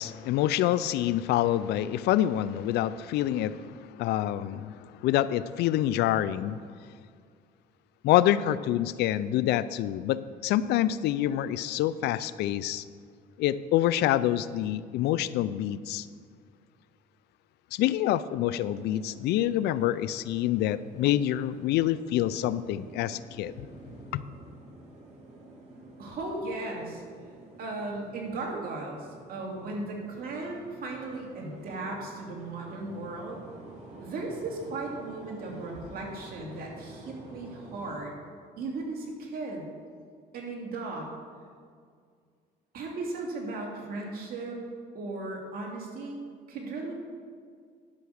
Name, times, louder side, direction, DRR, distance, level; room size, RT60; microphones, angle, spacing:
voice 1, 0.0-6.6 8.0-12.8 13.4-16.1 17.7-23.7 24.1-24.2, left 12 dB, 80° left, 16 dB, 0.4 m, -27 dB
sound 1, 18.4-38.0, right 2 dB, 40° right, 3.0 m, -49 dB
voice 2, 26.0-27.0 27.6-33.4 34.0-38.2 38.6-39.7 40.3-41.1 42.7-44.6 44.9-46.2 46.5-46.9, right 2 dB, 60° right, -1 dB, 2.6 m, -36 dB
11.5 x 5.9 x 6.4 m, 2.1 s
cardioid pair, 110°, 17 cm